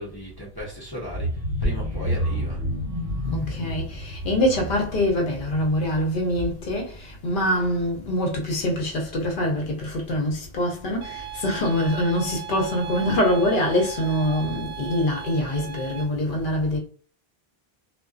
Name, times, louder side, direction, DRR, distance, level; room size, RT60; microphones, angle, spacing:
voice 1, 0.0-2.6, equal, 25° left, 0.6 m, -33 dB
sound 1, 1.0-6.8 7.2-7.5 7.8-7.9, equal, 20° right, 1.2 m, -30 dB
voice 2, 3.3-16.8, left 1 dB, 60° left, 0.8 m, -24 dB
sound 2, 11.0-16.0, right 11 dB, 65° right, 0.7 m, -37 dB
2.5 x 2.1 x 2.3 m
omnidirectional pair, 1.0 m